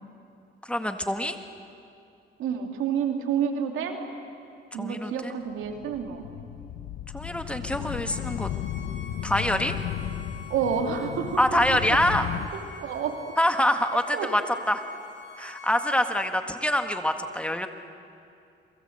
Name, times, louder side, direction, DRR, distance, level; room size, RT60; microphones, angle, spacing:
voice 1, 0.6-1.4 4.8-5.3 7.1-8.5 9.2-9.7 11.4-12.3 13.4-14.4 14.7-14.8 15.4-17.7, left 1 dB, 5° left, 6 dB, 1.9 m, -25 dB
voice 2, 2.4-4.0 4.7-6.2 10.5-11.8 12.8-13.2 14.1-14.3, right 7 dB, 85° right, 4 dB, 2.9 m, -29 dB
sound 1, 5.6-12.5, left 11 dB, 80° left, 1.0 m, -34 dB
Bowed string instrument, 8.1-16.3, left 2 dB, 60° left, 3.3 m, -46 dB
29.5 x 23.0 x 8.0 m, 2.6 s
cardioid pair, 90°, 20 cm